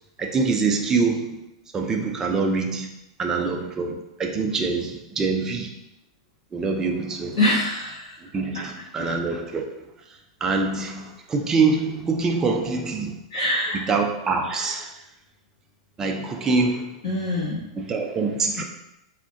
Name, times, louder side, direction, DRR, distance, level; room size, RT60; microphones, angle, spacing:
voice 1, 0.2-1.4 1.7-2.9 3.2-5.7 6.5-7.4 8.3-9.7 10.4-13.2 13.7-14.9 16.0-16.9 17.8-18.6, right 4 dB, 20° right, 2 dB, 0.4 m, -24 dB
voice 2, 7.3-8.2 13.3-13.9 17.0-17.6, left 1 dB, 65° left, -11 dB, 1.4 m, -24 dB
3.4 x 2.1 x 2.4 m, 0.87 s
hypercardioid pair, 120°, 3 cm